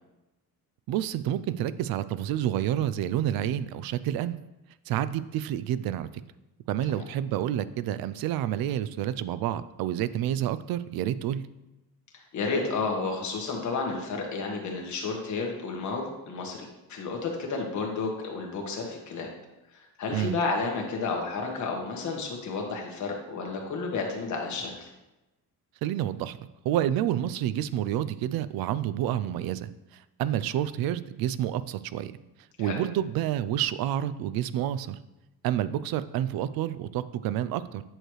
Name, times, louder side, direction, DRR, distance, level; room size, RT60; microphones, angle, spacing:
voice 1, 0.9-4.4 4.9-6.1 6.7-11.4 20.1-20.4 25.8-26.4 26.6-29.7 30.2-32.1 32.6-35.0 35.4-37.8, right 11 dB, 70° right, 15 dB, 0.5 m, -29 dB
voice 2, 12.1-19.3 19.7-24.9 32.6-32.8, left 4 dB, 50° left, 1 dB, 1.5 m, -31 dB
9.0 x 6.5 x 3.1 m, 0.99 s
cardioid pair, 175°, 38 cm